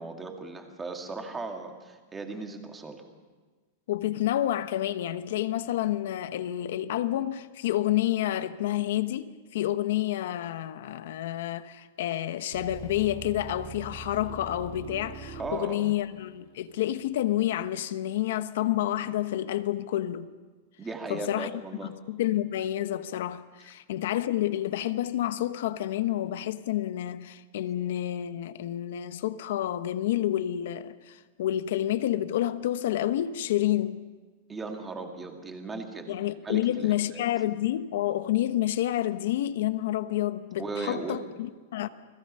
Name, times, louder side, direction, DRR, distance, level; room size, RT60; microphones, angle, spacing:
voice 1, 0.0-3.0 15.4-15.9 20.8-21.9 34.5-36.2 36.4-37.2 40.6-41.2, right 3 dB, 10° right, 2.2 m, -37 dB
voice 2, 3.9-20.3 21.1-21.5 21.8-34.0 36.1-41.9, left 13 dB, 65° left, 1.1 m, -29 dB
sound 1, 12.5-17.7, right 4 dB, 75° right, 4.8 m, -43 dB
29.5 x 20.5 x 5.6 m
supercardioid pair, 165°, 0 cm